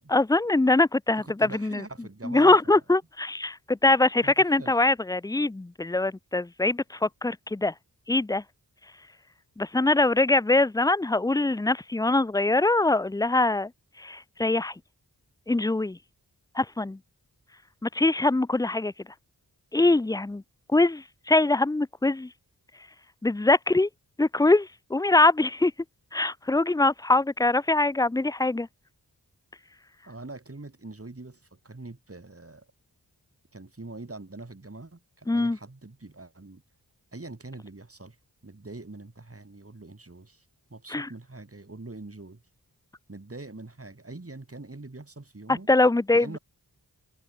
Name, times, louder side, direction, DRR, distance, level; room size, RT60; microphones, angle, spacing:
voice 1, 0.1-1.8 2.2-7.7 8.1-8.4 9.6-13.7 14.0-14.7 15.5-16.0 16.5-17.0 17.8-18.9 19.7-20.4 20.7-22.3 23.2-23.9 24.2-25.7 26.1-28.7 35.3-35.6 40.9-41.1 45.5-46.4, left 2 dB, 10° left, 0.4 m, -23 dB
voice 2, 1.2-2.8 4.2-4.7 30.1-32.7 33.5-36.6 37.1-38.2 38.4-40.4 40.7-42.4 43.1-45.7 46.1-46.4, right 2 dB, 35° right, 5.1 m, -43 dB
wide cardioid pair, 60°, 39 cm